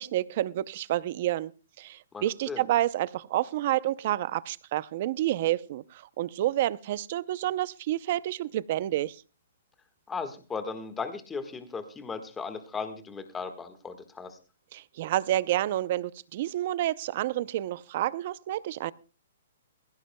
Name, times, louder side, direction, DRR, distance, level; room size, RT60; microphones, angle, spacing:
voice 1, 0.0-1.5 1.8-9.2 14.7-18.9, right 14 dB, 45° right, 0.5 m, -29 dB
voice 2, 2.1-2.6 10.1-14.4, left 5 dB, 10° left, 1.5 m, -37 dB
20.0 x 16.5 x 2.2 m
hypercardioid pair, 160°, 0 cm